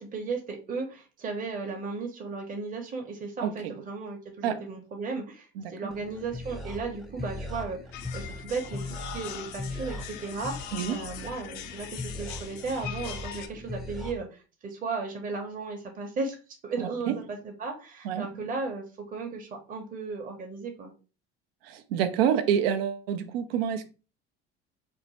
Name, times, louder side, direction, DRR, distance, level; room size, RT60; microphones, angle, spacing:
voice 1, 0.0-16.4 16.6-20.9, right 4 dB, 30° right, 0.7 m, -35 dB
voice 2, 5.6-5.9 10.7-11.0 17.1-17.2 18.0-18.3 21.6-23.9, right 9 dB, 85° right, 0.5 m, -27 dB
sound 1, 5.9-14.1, left 2 dB, ahead, 0.5 m, -39 dB
sound 2, 7.9-13.5, left 9 dB, 65° left, 0.5 m, -41 dB
2.6 x 2.1 x 3.0 m
hypercardioid pair, 75°, 29 cm